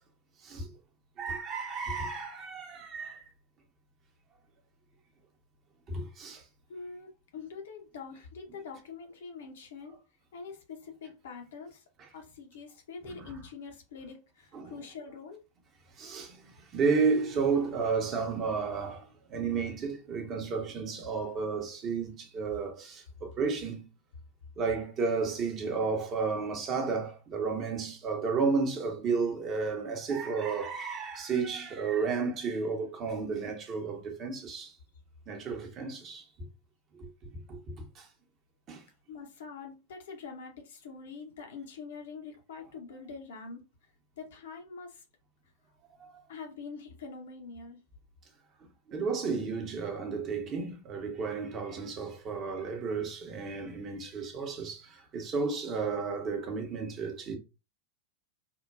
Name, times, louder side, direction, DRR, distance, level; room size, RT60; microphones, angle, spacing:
voice 1, 1.2-3.2 5.9-6.4 13.1-13.3 14.5-14.7 16.0-23.9 24.6-34.7 35.3-36.3 36.9-37.1 37.5-38.1 38.7-38.8 46.0-46.2 48.9-57.4, right 5 dB, 30° right, 0.8 m, -32 dB
voice 2, 6.7-10.0 10.3-11.8 12.1-15.4 39.1-43.6 44.2-45.0 46.3-47.8, left 5 dB, 60° left, 0.8 m, -44 dB
3.7 x 2.2 x 2.3 m
figure-of-eight pair, 90°, 0 cm